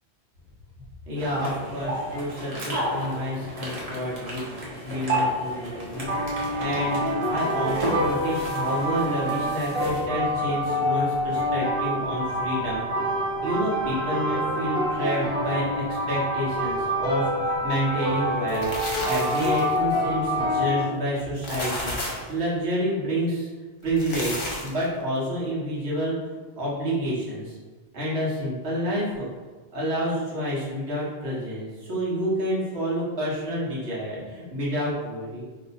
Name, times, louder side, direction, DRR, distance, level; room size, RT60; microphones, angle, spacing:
voice 1, 1.1-7.0 7.3-12.8 13.4-18.7 19.0-23.5 23.8-26.1 26.6-27.6 27.9-29.3 29.7-35.4, equal, 70° right, -6 dB, 1.3 m, -29 dB
sound 1, 1.2-10.1, right 1 dB, 40° right, 0.7 m, -32 dB
sound 2, 5.9-20.8, equal, 5° left, 0.8 m, -27 dB
sound 3, 18.3-19.8 21.2-22.3 23.8-24.8, left 1 dB, 55° left, 0.9 m, -32 dB
2.9 x 2.1 x 4.0 m, 1.3 s
omnidirectional pair, 1.1 m